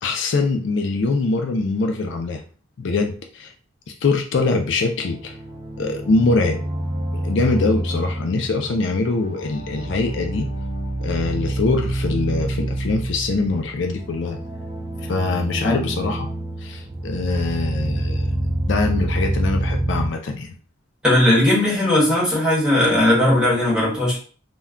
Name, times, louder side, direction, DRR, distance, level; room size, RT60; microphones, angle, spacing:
voice 1, 0.0-2.4 2.8-3.5 4.0-5.4 5.8-6.6 7.1-10.5 11.0-14.4 15.0-16.3 16.6-18.3 18.7-20.5, left 3 dB, 60° left, 3 dB, 0.4 m, -23 dB
sound 1, 4.8-20.1, right 1 dB, 25° right, 0.4 m, -27 dB
voice 2, 21.0-24.2, left 1 dB, 5° right, -6 dB, 1.0 m, -17 dB
2.2 x 2.2 x 3.6 m, 0.39 s
head